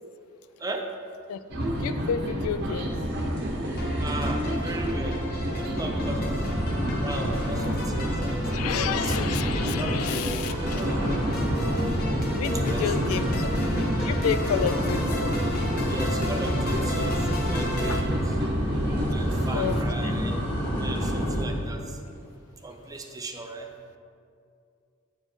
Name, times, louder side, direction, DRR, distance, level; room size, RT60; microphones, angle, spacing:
sound 1, 1.5-19.8, equal, 50° right, 1.0 m, -30 dB
voice 1, 1.7-2.9 8.5-10.8 12.4-13.5 13.8-15.3 17.9-18.0 19.5-19.8 20.0-20.2, left 7 dB, 75° left, 12 dB, 0.3 m, -30 dB
sound 2, 3.4-3.8 4.0-4.4 4.8-4.9 5.5-21.7, equal, 25° left, 1.8 m, -30 dB
sound 3, 3.8-18.0, equal, 45° left, 0.9 m, -35 dB
voice 2, 4.0-6.4 7.0-8.7 9.0-9.2 9.6-11.1 12.7-12.8 13.1-13.4 15.9-18.3 19.1-20.4 20.7-22.0 22.6-23.7, right 2 dB, 15° right, 4 dB, 0.5 m, -37 dB
9.2 x 4.4 x 4.4 m, 2.4 s
head